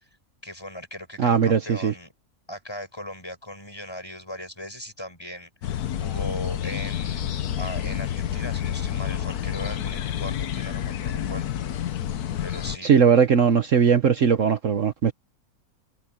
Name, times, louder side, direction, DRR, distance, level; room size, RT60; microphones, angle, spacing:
voice 1, 0.4-2.1 2.5-11.5 12.4-12.9, left 1 dB, 15° left, 7.3 m, -38 dB
voice 2, 1.2-1.9 12.8-15.1, right 7 dB, 60° right, 1.3 m, -19 dB
sound 1, 5.6-12.8, left 10 dB, 90° left, 1.4 m, -29 dB
omnidirectional pair, 1.6 m